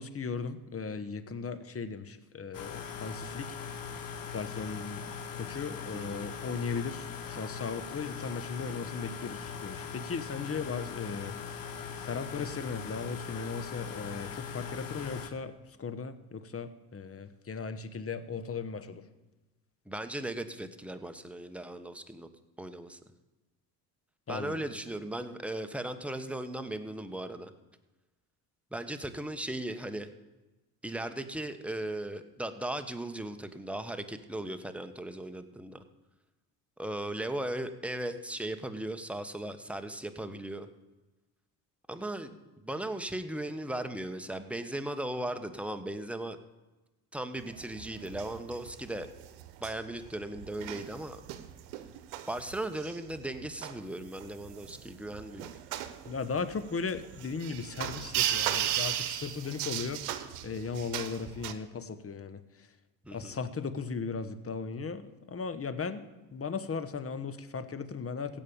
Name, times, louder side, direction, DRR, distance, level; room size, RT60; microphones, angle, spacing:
voice 1, 0.0-3.6 4.3-5.1 5.4-11.6 12.0-15.5 15.8-19.0 24.3-24.6 56.0-60.0 60.4-62.7 63.1-68.4, left 5 dB, 30° left, 12 dB, 1.2 m, -37 dB
sound 1, 2.5-15.3, left 6 dB, 45° left, 1.5 m, -41 dB
voice 2, 5.9-6.3 19.9-22.3 22.6-23.0 24.3-27.5 28.7-30.1 30.8-35.8 36.8-40.7 41.9-46.4 47.1-49.1 49.6-51.2 52.3-55.5 63.0-63.4, right 1 dB, 5° right, 8 dB, 1.2 m, -37 dB
sound 2, 47.4-61.5, right 12 dB, 80° right, 1.0 m, -37 dB
16.0 x 5.3 x 8.7 m, 1.1 s
hypercardioid pair, 60°, 46 cm